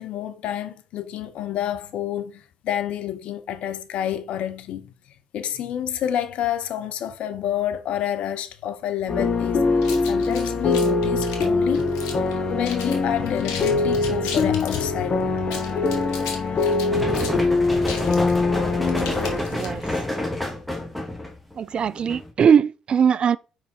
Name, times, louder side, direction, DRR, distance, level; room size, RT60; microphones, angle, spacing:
voice 1, 0.0-4.9 5.3-9.7 10.0-15.5 16.0-16.6, left 10 dB, 70° left, 0.8 m, -29 dB
sound 1, 9.1-19.4, left 3 dB, 45° left, 1.3 m, -23 dB
sound 2, 9.8-12.3 12.6-13.0 13.3-14.9 15.4-20.0, left 6 dB, 85° left, 1.2 m, -36 dB
sound 3, 16.9-22.3, left 1 dB, 5° left, 2.1 m, -29 dB
voice 2, 19.5-19.8 21.6-23.4, right 7 dB, 50° right, 0.3 m, -20 dB
4.9 x 4.8 x 4.3 m
hypercardioid pair, 60°, 2 cm